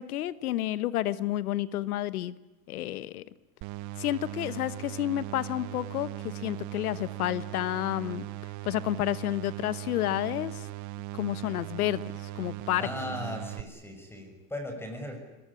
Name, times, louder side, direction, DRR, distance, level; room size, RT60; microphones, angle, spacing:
voice 1, 0.0-2.3 2.7-3.2 4.0-8.3 8.6-10.7 11.1-12.9, left 14 dB, 90° left, 17 dB, 1.3 m, -30 dB
sound 1, 3.6-13.6, right 16 dB, 40° right, 0.8 m, -39 dB
voice 2, 12.8-15.2, left 1 dB, 5° left, 6 dB, 6.4 m, -37 dB
23.5 x 20.5 x 10.0 m, 1.1 s
supercardioid pair, 125°, 43 cm